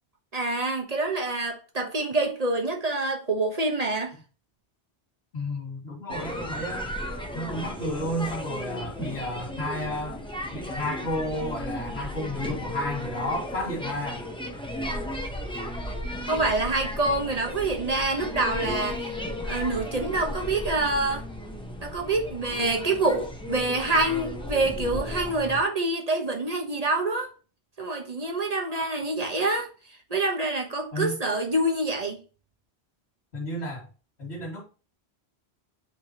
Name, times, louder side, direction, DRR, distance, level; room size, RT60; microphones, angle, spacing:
voice 1, 0.3-4.1 16.3-19.2 19.4-21.2 21.8-27.3 27.8-29.7 30.1-32.2, right 2 dB, 35° right, 1.3 m, -26 dB
voice 2, 5.3-6.9 7.3-10.2 10.5-14.3 28.7-28.8 30.9-31.2 33.3-33.9 34.2-34.6, left 1 dB, 80° left, 2.6 m, -32 dB
sound 1, 6.1-25.6, left 1 dB, 5° left, 0.9 m, -35 dB
10.0 x 3.6 x 3.0 m
omnidirectional pair, 1.1 m